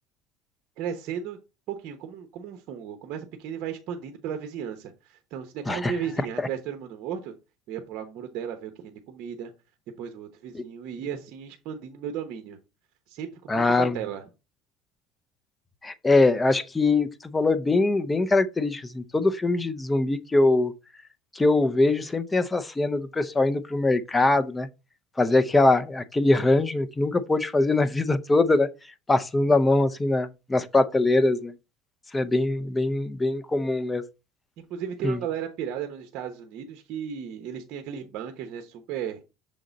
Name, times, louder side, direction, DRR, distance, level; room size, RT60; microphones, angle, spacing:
voice 1, 0.8-1.4 1.7-7.3 7.7-9.5 10.0-12.6 13.1-14.2 34.6-39.2, right 8 dB, 55° right, 0.9 m, -35 dB
voice 2, 13.5-14.0 15.8-20.7 21.3-24.7 25.2-28.7 29.1-31.5 32.1-34.0 35.0-35.2, left 2 dB, 10° left, 0.5 m, -22 dB
6.4 x 3.8 x 4.0 m
cardioid pair, 135°, 0 cm